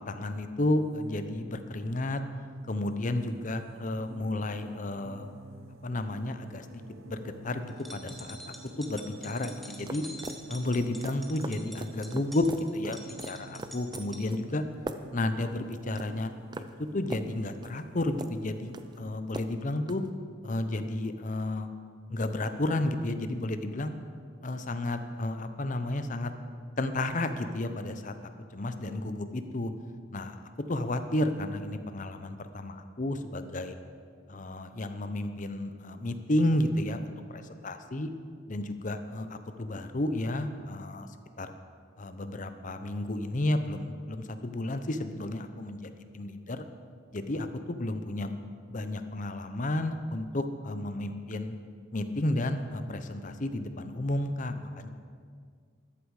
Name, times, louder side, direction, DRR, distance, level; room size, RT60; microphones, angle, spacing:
voice 1, 0.1-2.2 2.7-5.3 5.8-10.0 10.5-12.5 12.7-13.0 13.2-14.6 15.1-16.3 16.9-20.0 20.4-21.7 22.1-23.9 24.4-26.3 26.8-28.1 28.5-29.7 30.1-30.4 30.7-33.7 34.3-38.1 38.5-41.1 41.4-41.5 42.0-46.6 47.1-48.3 48.7-51.6 51.9-54.9, left 1 dB, 40° left, 9 dB, 0.8 m, -32 dB
sound 1, 0.6-19.2, right 2 dB, 85° right, 0.7 m, -50 dB
sound 2, 7.7-14.2, equal, ahead, 1.1 m, -46 dB
sound 3, 9.5-20.1, right 2 dB, 20° right, 0.5 m, -42 dB
13.5 x 11.5 x 4.9 m, 2.1 s
head